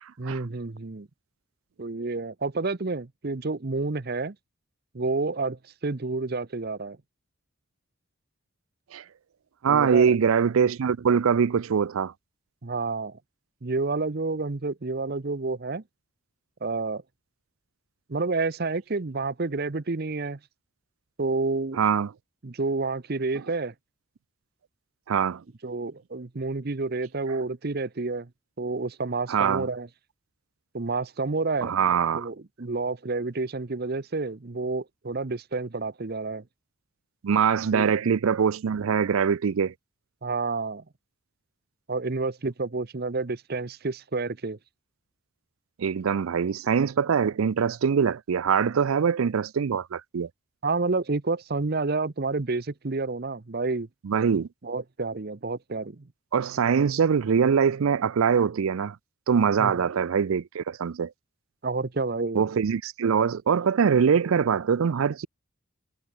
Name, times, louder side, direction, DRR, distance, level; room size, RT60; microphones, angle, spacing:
voice 1, 0.2-1.1 1.8-4.3 4.9-7.0 9.7-10.2 12.6-13.2 13.6-15.8 16.6-17.0 18.1-20.4 21.2-21.8 22.4-23.7 25.6-28.3 28.6-29.9 30.7-31.7 32.1-36.4 37.7-37.9 40.2-40.8 41.9-44.6 50.6-53.9 54.6-56.1 59.6-59.7 61.6-62.4, right 3 dB, 45° right, 0.8 m, -29 dB
voice 2, 9.6-12.1 21.7-22.1 25.1-25.4 29.3-29.7 31.6-32.3 37.2-39.7 45.8-50.3 54.0-54.5 56.3-59.0 59.3-61.1 62.3-65.3, right 6 dB, 75° right, 0.4 m, -23 dB
head